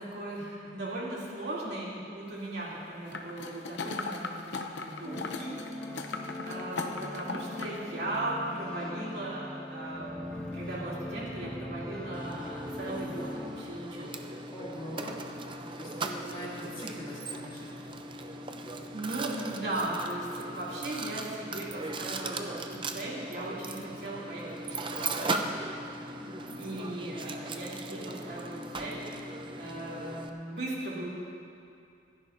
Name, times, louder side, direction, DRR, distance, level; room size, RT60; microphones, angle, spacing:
voice 1, 0.0-5.6 6.1-14.2 18.9-25.6 26.6-31.1, right 1 dB, 60° right, -6 dB, 3.0 m, -38 dB
sound 1, 3.1-7.8 8.1-8.2, left 3 dB, 70° left, 0.8 m, -38 dB
sound 2, 5.0-13.6, left 1 dB, 5° left, 1.5 m, -40 dB
Mechanisms, 12.1-30.3, right 2 dB, 25° right, 0.6 m, -38 dB
voice 2, 14.5-15.2 15.7-17.9 26.2-27.2, equal, 25° left, -7 dB, 2.7 m, -43 dB
27.0 x 10.5 x 2.7 m, 2.5 s
head